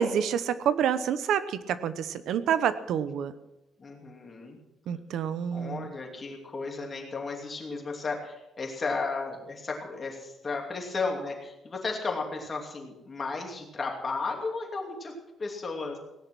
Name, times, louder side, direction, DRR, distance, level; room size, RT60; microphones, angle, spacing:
voice 1, 0.0-3.3 4.9-5.9, right 8 dB, 65° right, 14 dB, 0.9 m, -28 dB
voice 2, 3.8-4.6 5.5-15.1 15.4-16.0, left 4 dB, 25° left, 1 dB, 2.8 m, -34 dB
18.0 x 10.5 x 6.2 m, 0.97 s
cardioid pair, 175°, 0 cm